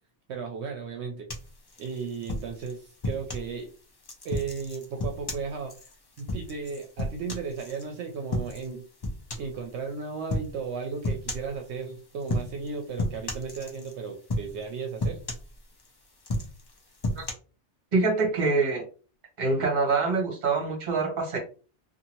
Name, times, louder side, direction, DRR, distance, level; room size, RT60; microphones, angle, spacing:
voice 1, 0.3-1.3 1.8-3.7 4.2-5.9 6.2-8.8 9.4-15.2, right 5 dB, 75° right, 4 dB, 0.8 m, -35 dB
sound 1, 1.3-3.5 4.0-7.8 8.3-8.7 9.0-9.6 10.3-10.5 11.0-11.6 12.2-12.7 13.0-14.0 14.3-14.7 15.0-15.9 16.2-17.3, left 1 dB, 35° left, 0.4 m, -32 dB
voice 2, 17.9-18.8 19.4-21.4, right 3 dB, 40° right, 0 dB, 1.0 m, -25 dB
2.7 x 2.5 x 2.8 m, 0.37 s
omnidirectional pair, 1.2 m